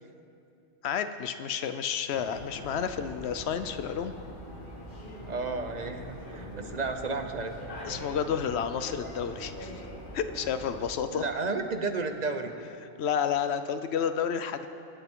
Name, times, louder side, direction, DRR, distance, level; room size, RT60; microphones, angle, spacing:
voice 1, 0.8-4.1 7.8-9.7 10.1-11.2 13.0-14.7, left 7 dB, 70° left, 10 dB, 0.8 m, -30 dB
sound 1, 2.1-10.9, equal, 45° left, 1.6 m, -43 dB
voice 2, 5.3-7.7 11.1-12.5, right 3 dB, 45° right, 6 dB, 0.7 m, -32 dB
24.0 x 8.1 x 3.7 m, 2.7 s
omnidirectional pair, 1.2 m